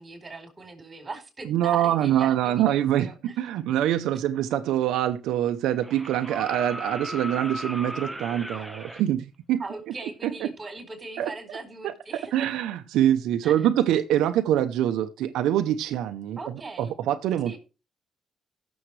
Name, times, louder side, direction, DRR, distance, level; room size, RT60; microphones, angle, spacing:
voice 1, 0.0-3.3 9.6-12.6 13.4-13.7 16.4-16.9 17.4-17.6, right 3 dB, 25° right, 4.2 m, -40 dB
voice 2, 1.4-9.6 10.2-10.5 11.2-11.3 11.8-11.9 12.3-16.4 16.8-17.6, right 11 dB, 90° right, 0.7 m, -24 dB
sound 1, 5.8-9.0 10.8-10.9, equal, 5° right, 1.2 m, -36 dB
16.0 x 7.1 x 3.3 m
cardioid pair, 90°, 0 cm